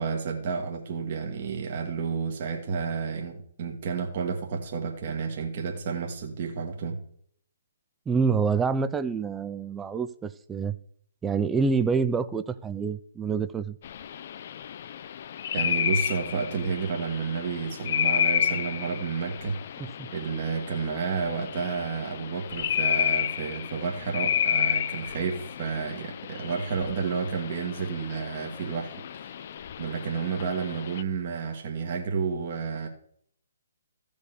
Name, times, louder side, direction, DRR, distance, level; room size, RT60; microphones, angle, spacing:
voice 1, 0.0-7.0 15.5-29.5 29.8-32.9, right 5 dB, 45° right, 1.8 m, -31 dB
voice 2, 8.1-10.8 11.2-13.8 20.0-20.1, right 5 dB, 10° right, 0.4 m, -27 dB
sound 1, 13.8-31.0, left 9 dB, 45° left, 0.5 m, -31 dB
15.0 x 5.3 x 6.8 m
figure-of-eight pair, 140°, 0 cm